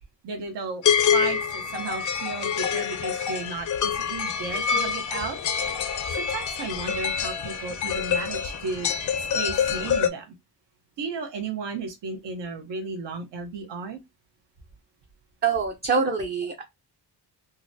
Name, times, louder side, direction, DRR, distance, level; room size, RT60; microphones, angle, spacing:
voice 1, 0.2-0.8 1.1-5.4 6.1-10.3 11.0-14.0, right 4 dB, 80° right, 0.9 m, -34 dB
sound 1, 0.8-10.1, left 7 dB, 50° left, 0.4 m, -26 dB
voice 2, 15.4-16.6, right 5 dB, 25° right, 0.4 m, -25 dB
3.9 x 2.0 x 2.6 m
wide cardioid pair, 145°, 42 cm